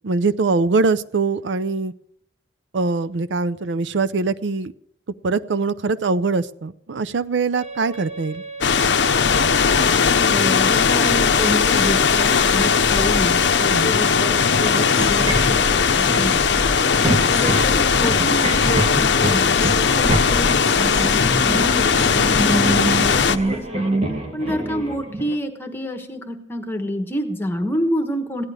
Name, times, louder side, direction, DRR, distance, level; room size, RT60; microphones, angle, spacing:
voice 1, 0.0-1.9 2.7-4.7 5.2-8.4 13.7-13.9, right 4 dB, 75° right, 13 dB, 0.5 m, -22 dB
sound 1, 7.6-25.4, right 2 dB, 35° right, 1.6 m, -28 dB
sound 2, 8.6-23.4, left 6 dB, 70° left, 0.6 m, -18 dB
voice 2, 10.1-16.4 17.0-23.8 24.3-28.4, equal, 10° left, 5 dB, 1.1 m, -28 dB
sound 3, 14.6-23.6, left 1 dB, 15° right, 5.3 m, -31 dB
16.0 x 11.0 x 4.8 m, 0.74 s
head